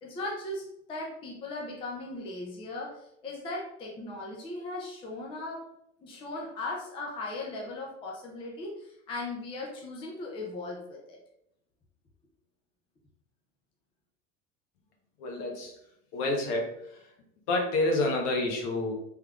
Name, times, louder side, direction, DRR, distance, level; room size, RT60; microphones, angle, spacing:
voice 1, 0.0-5.6 6.0-11.2, left 2 dB, 15° left, -2 dB, 0.4 m, -38 dB
voice 2, 15.2-15.7 16.1-16.7 17.5-18.9, left 2 dB, 60° left, 1 dB, 1.1 m, -28 dB
3.5 x 3.2 x 2.3 m, 0.78 s
supercardioid pair, 135°, 39 cm